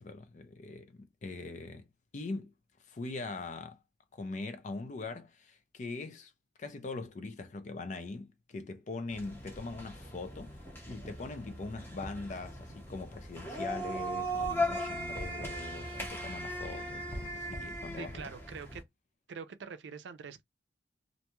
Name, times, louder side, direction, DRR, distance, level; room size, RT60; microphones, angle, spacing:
voice 1, 0.0-1.9 2.1-2.5 2.9-3.8 4.1-6.3 6.6-10.6 10.9-18.3, left 3 dB, 45° left, 0.4 m, -42 dB
sound 1, 9.1-18.8, equal, 15° left, 0.7 m, -38 dB
voice 2, 18.0-18.8 19.3-20.4, right 5 dB, 90° right, 0.4 m, -44 dB
2.5 x 2.2 x 2.9 m
head